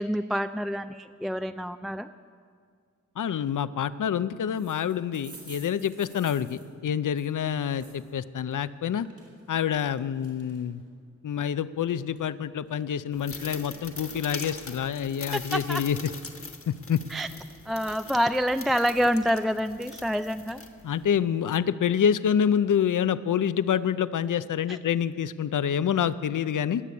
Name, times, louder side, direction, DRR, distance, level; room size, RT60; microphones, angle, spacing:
voice 1, 0.0-2.1 15.5-15.8 17.1-17.3 17.7-20.6 24.7-24.8, equal, ahead, 10 dB, 0.3 m, -27 dB
voice 2, 3.2-9.1 9.5-10.8 11.2-16.0 16.7-17.0 20.8-26.8, left 8 dB, 75° left, 15 dB, 0.5 m, -27 dB
sound 1, 4.6-8.1 8.5-10.9 11.3-12.8 13.1-14.2, right 3 dB, 70° right, 3.8 m, -51 dB
sound 2, 13.1-21.2, left 4 dB, 45° left, 1.3 m, -42 dB
19.5 x 6.9 x 8.4 m, 2.1 s
wide cardioid pair, 80°, 31 cm